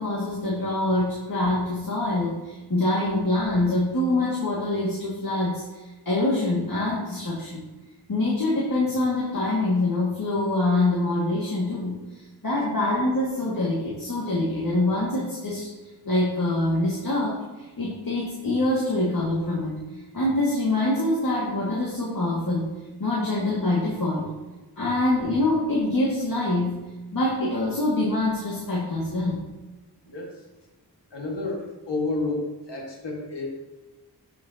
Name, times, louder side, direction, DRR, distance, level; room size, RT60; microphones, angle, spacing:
voice 1, 0.0-7.6 8.1-15.7 16.1-19.8 20.1-22.7 23.0-24.3 24.8-26.9 27.1-29.4, left 2 dB, 55° left, -5 dB, 2.2 m, -25 dB
voice 2, 30.1-30.4 31.1-33.5, left 2 dB, 85° left, -1 dB, 2.0 m, -30 dB
13.0 x 6.4 x 2.9 m, 1.1 s
wide cardioid pair, 65°, 41 cm